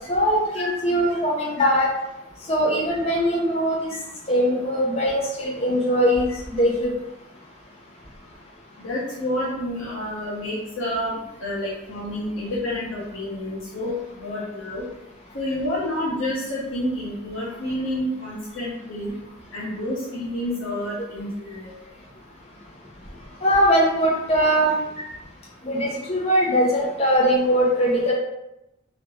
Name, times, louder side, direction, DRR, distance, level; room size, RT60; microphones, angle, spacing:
voice 1, 0.1-1.9 2.5-3.9 4.3-6.9 23.4-24.7 25.6-28.1, equal, 30° left, -3 dB, 0.6 m, -21 dB
voice 2, 8.8-14.9 15.3-19.1 19.5-21.7, left 1 dB, 75° left, -8 dB, 0.8 m, -29 dB
3.2 x 2.5 x 3.0 m, 0.88 s
head